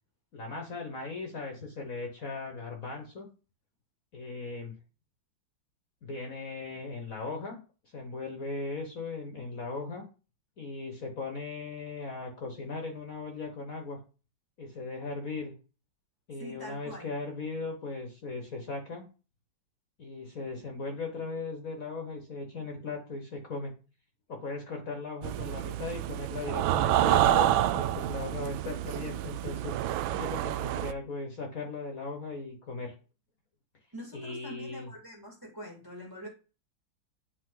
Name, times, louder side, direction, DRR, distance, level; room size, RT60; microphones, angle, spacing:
voice 1, 0.3-3.3 4.1-4.7 6.0-7.6 7.8-10.0 10.6-14.0 14.6-15.5 16.3-19.0 20.0-23.7 24.3-29.8 30.1-32.9 34.1-34.9, left 3 dB, 50° left, 3 dB, 1.6 m, -38 dB
voice 2, 16.4-17.1 33.9-36.3, equal, 10° right, 0 dB, 2.3 m, -44 dB
sound 1, 25.2-30.9, right 13 dB, 85° right, 1.3 m, -28 dB
9.7 x 4.6 x 3.9 m, 0.33 s
omnidirectional pair, 2.1 m